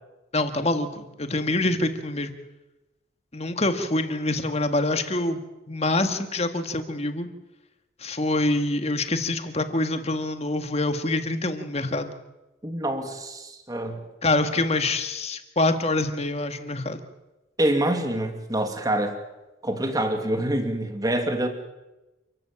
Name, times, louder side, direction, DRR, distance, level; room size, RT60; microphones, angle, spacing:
voice 1, 0.3-2.3 3.3-5.4 5.7-7.3 8.0-12.2 14.2-17.0, left 2 dB, 35° left, 8 dB, 1.9 m, -25 dB
voice 2, 12.6-14.1 17.6-19.2 19.6-21.5, right 1 dB, 20° right, 6 dB, 2.5 m, -26 dB
29.0 x 14.5 x 8.9 m, 1.0 s
head